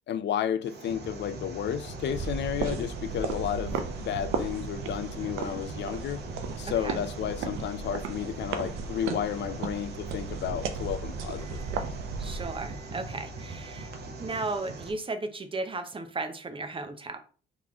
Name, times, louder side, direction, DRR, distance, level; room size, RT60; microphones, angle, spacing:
voice 1, 0.1-6.2 6.6-11.6, left 9 dB, 65° left, 0.5 m, -32 dB
sound 1, 0.6-14.9, right 4 dB, 55° right, 0.9 m, -42 dB
sound 2, 1.0-14.3, left 7 dB, 15° left, 1.7 m, -49 dB
sound 3, 1.9-12.8, right 5 dB, 85° right, 0.6 m, -35 dB
voice 2, 12.2-13.9 14.2-17.2, right 3 dB, 25° right, 0.7 m, -35 dB
4.0 x 3.1 x 3.6 m
cardioid pair, 90°, 20 cm